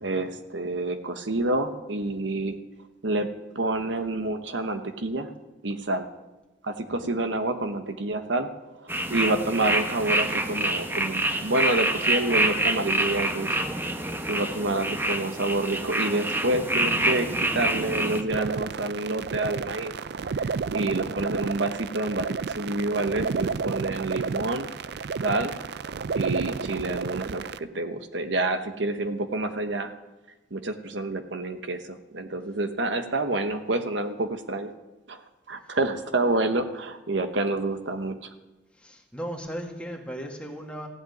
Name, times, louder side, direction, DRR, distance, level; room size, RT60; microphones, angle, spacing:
voice 1, 0.0-2.6 3.0-3.3 3.5-5.3 5.6-6.1 6.6-8.5 8.8-13.5 14.3-17.3 17.5-19.9 20.7-24.7 25.2-25.5 26.1-29.9 30.5-34.7 35.1-35.2 35.5-38.2, right 2 dB, 85° right, 8 dB, 1.2 m, -28 dB
sound 1, 8.9-18.2, right 1 dB, 10° right, 1.1 m, -26 dB
sound 2, 18.3-27.6, right 5 dB, 60° right, 0.4 m, -31 dB
voice 2, 38.7-40.9, equal, 5° left, 1 dB, 2.0 m, -37 dB
15.5 x 7.8 x 9.4 m, 1.1 s
head